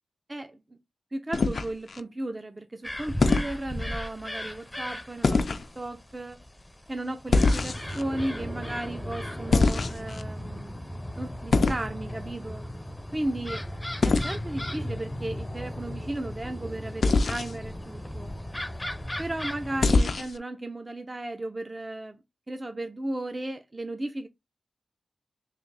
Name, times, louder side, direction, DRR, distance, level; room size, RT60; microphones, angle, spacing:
voice 1, 0.3-0.6 1.1-5.4 5.8-6.4 6.9-10.8 11.2-12.6 13.1-13.7 14.0-18.3 19.2-22.2 22.5-24.3, right 1 dB, 30° right, 0.6 m, -35 dB
sound 1, 1.3-2.0 3.2-3.5 5.2-5.7 7.3-8.0 9.5-10.2 11.5-11.9 14.0-14.3 17.0-17.5 19.8-20.4, left 3 dB, 65° left, 0.4 m, -23 dB
sound 2, 2.8-19.9, left 1 dB, 15° left, 0.6 m, -36 dB
3.4 x 2.5 x 3.9 m
cardioid pair, 50°, 0 cm